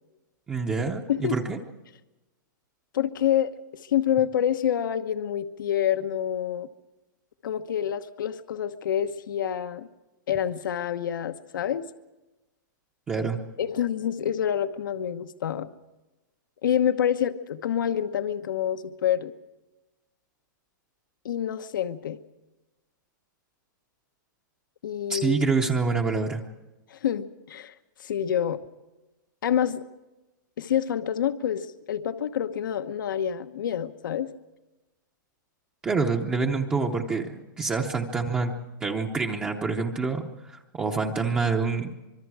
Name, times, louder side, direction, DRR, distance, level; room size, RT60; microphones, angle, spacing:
voice 1, 0.5-1.6 13.1-13.4 25.1-26.4 35.8-38.5 38.8-41.9, right 4 dB, 10° right, 2 dB, 0.8 m, -26 dB
voice 2, 2.9-6.7 7.4-9.9 10.3-11.9 13.6-15.7 16.6-19.3 21.2-22.2 24.8-25.4 26.9-27.7 28.0-28.6 29.4-29.8 30.6-34.3, left 9 dB, 75° left, 9 dB, 1.1 m, -27 dB
25.5 x 23.0 x 4.8 m, 1.1 s
supercardioid pair, 175°, 11 cm